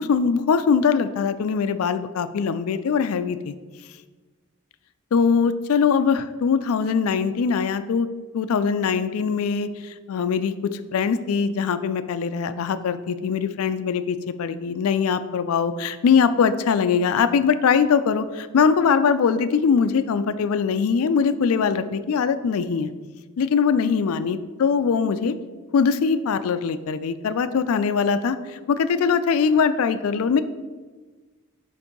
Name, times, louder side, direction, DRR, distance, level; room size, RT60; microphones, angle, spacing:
voice 1, 0.0-3.5 5.1-8.1 8.3-22.9 23.4-25.3 25.7-30.4, left 6 dB, 70° left, 12 dB, 0.3 m, -22 dB
7.1 x 2.6 x 5.2 m, 1.3 s
head